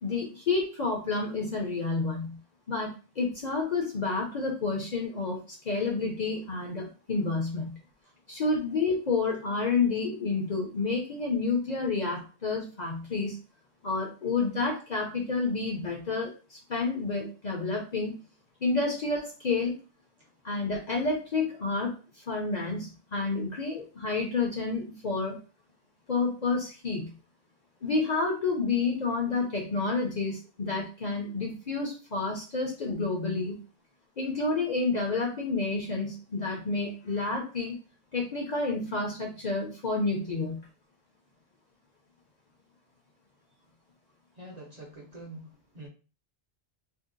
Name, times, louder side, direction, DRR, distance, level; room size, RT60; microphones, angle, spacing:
voice 1, 0.0-2.4 2.7-5.4 5.6-7.8 8.3-13.4 13.8-18.2 18.6-19.8 20.4-22.0 22.3-25.4 26.1-27.1 27.8-33.6 34.2-37.7 38.1-40.7, left 3 dB, 45° left, 0 dB, 0.7 m, -29 dB
voice 2, 44.4-45.9, right 1 dB, 40° right, -1 dB, 0.7 m, -46 dB
2.7 x 2.0 x 3.7 m, 0.34 s
omnidirectional pair, 1.2 m